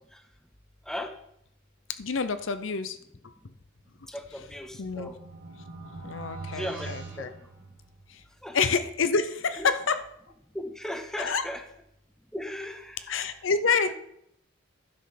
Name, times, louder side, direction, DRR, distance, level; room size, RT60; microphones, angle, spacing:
voice 1, 2.0-3.0 4.8-5.1 6.0-7.3 8.1-8.2 8.5-10.0 11.2-11.4 13.1-13.9, left 5 dB, 60° left, 11 dB, 0.6 m, -27 dB
voice 2, 4.1-5.2 6.5-7.3 8.4-8.6 9.6-9.7 10.5-11.6 12.3-13.0, equal, ahead, 6 dB, 0.8 m, -36 dB
sound 1, 4.2-8.2, right 3 dB, 55° right, 2.0 m, -43 dB
11.5 x 5.4 x 5.8 m, 0.74 s
head